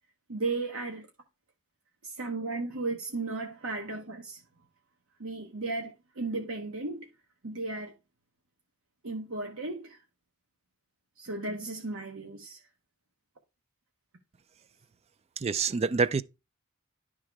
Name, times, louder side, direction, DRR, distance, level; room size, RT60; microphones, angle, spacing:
voice 1, 0.3-1.1 2.0-4.4 5.2-7.1 7.4-7.9 9.0-10.0 11.2-12.6, right 3 dB, 70° right, 1.1 m, -35 dB
voice 2, 15.4-16.2, right 5 dB, 30° right, 0.3 m, -26 dB
11.0 x 3.8 x 4.6 m
head